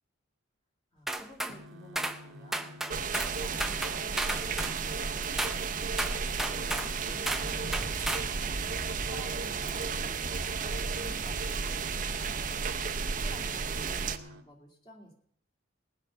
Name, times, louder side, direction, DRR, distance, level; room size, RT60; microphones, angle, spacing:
voice 1, 0.9-12.8 13.1-15.1, equal, 20° left, 1 dB, 2.2 m, -52 dB
sound 1, 1.1-1.6 2.0-2.2 2.5-3.3 3.6-4.8 5.4-5.6 6.0-6.9 7.3-7.5 7.7-8.3, right 1 dB, ahead, 0.6 m, -33 dB
sound 2, 1.5-14.4, left 1 dB, 75° right, 1.0 m, -49 dB
sound 3, 2.9-14.2, right 5 dB, 40° right, 0.7 m, -33 dB
19.5 x 8.1 x 5.5 m, 0.66 s
head